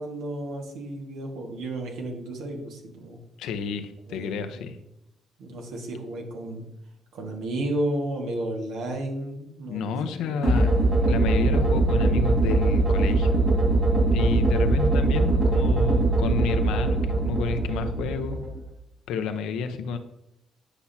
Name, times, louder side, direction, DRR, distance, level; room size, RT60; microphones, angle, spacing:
voice 1, 0.0-3.2 4.1-4.3 4.5-4.7 5.4-6.6 7.1-10.5, right 1 dB, 85° right, 1 dB, 1.7 m, -32 dB
voice 2, 3.4-4.8 9.6-10.7 11.1-13.4 14.1-18.4 19.1-20.0, left 6 dB, 90° left, 8 dB, 0.8 m, -30 dB
sound 1, 10.4-18.6, right 2 dB, 35° right, 2.7 m, -22 dB
9.9 x 5.8 x 2.8 m, 0.82 s
cardioid pair, 90°, 0 cm